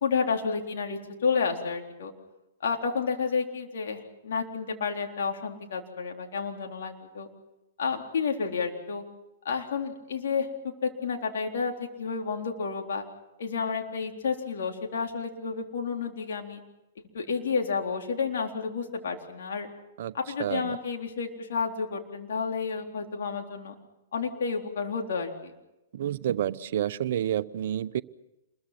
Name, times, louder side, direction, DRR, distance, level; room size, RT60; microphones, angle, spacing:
voice 1, 0.0-2.1 2.6-7.3 7.8-9.0 9.5-10.5 10.8-13.0 13.4-16.6 17.1-19.7 20.1-23.7 24.1-25.5, left 5 dB, 65° left, 2 dB, 3.9 m, -30 dB
voice 2, 20.4-20.8 25.9-28.0, right 11 dB, 60° right, 14 dB, 0.9 m, -29 dB
28.0 x 22.0 x 6.0 m, 0.95 s
hypercardioid pair, 115°, 0 cm